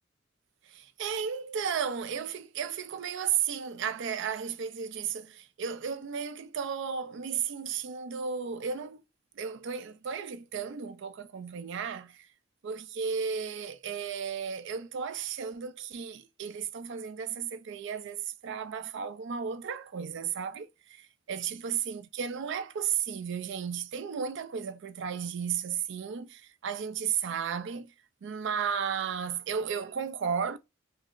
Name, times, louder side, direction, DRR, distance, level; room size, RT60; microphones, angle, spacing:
voice 1, 0.7-9.0 9.4-12.3 12.6-27.9 28.2-30.6, right 7 dB, 65° right, 0.4 m, -34 dB
5.5 x 2.0 x 2.4 m
head